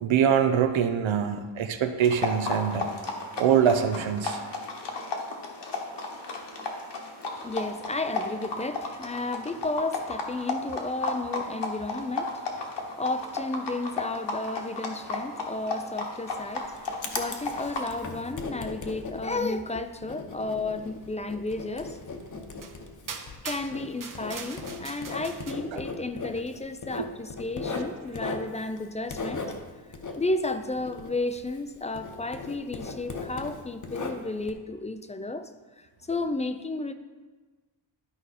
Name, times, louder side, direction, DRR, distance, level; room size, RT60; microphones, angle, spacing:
voice 1, 0.0-2.9 3.4-4.4 25.7-25.8, right 8 dB, 85° right, 9 dB, 0.8 m, -24 dB
sound 1, 2.0-17.9, left 3 dB, 65° left, 1.3 m, -34 dB
voice 2, 7.4-22.0 23.4-29.4 30.2-35.5 35.8-36.9, left 2 dB, 15° left, 10 dB, 0.3 m, -33 dB
Writing, 16.3-31.7 31.9-34.5, left 3 dB, 40° left, 0.9 m, -38 dB
sound 2, 21.9-22.0 22.6-22.8 23.1-25.5, right 5 dB, 45° right, 0.8 m, -41 dB
11.5 x 4.9 x 4.2 m, 1.3 s
wide cardioid pair, 120°, 45 cm